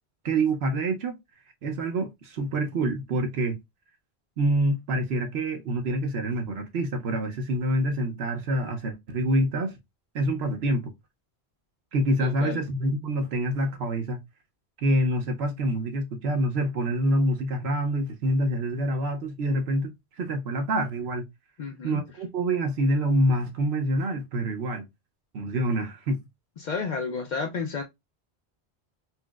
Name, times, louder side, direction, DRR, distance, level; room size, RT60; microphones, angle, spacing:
voice 1, 0.2-1.2 1.6-3.6 4.4-9.7 10.1-10.9 11.9-14.2 14.8-21.2 21.8-24.8 25.3-26.2, right 1 dB, 70° right, 0.9 m, -26 dB
voice 2, 12.2-12.6 21.6-22.0 26.6-27.8, left 5 dB, 60° left, 0.5 m, -31 dB
4.3 x 2.0 x 2.2 m
omnidirectional pair, 1.1 m